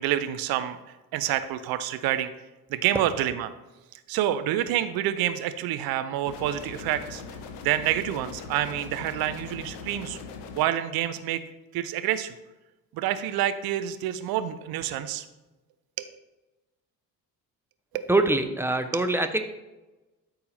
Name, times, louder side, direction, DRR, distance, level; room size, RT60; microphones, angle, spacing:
voice 1, 0.0-2.3 2.7-3.5 4.1-7.2 7.6-10.2 10.6-11.4 11.7-12.3 12.9-15.3 16.0-16.1 17.9-18.1, right 12 dB, 50° right, 11 dB, 0.7 m, -28 dB
sound 1, 6.3-10.7, left 5 dB, 65° left, 1.0 m, -40 dB
voice 2, 18.1-19.4, right 2 dB, 5° right, 7 dB, 0.7 m, -23 dB
12.5 x 4.7 x 3.4 m, 1.1 s
figure-of-eight pair, 55°, 49 cm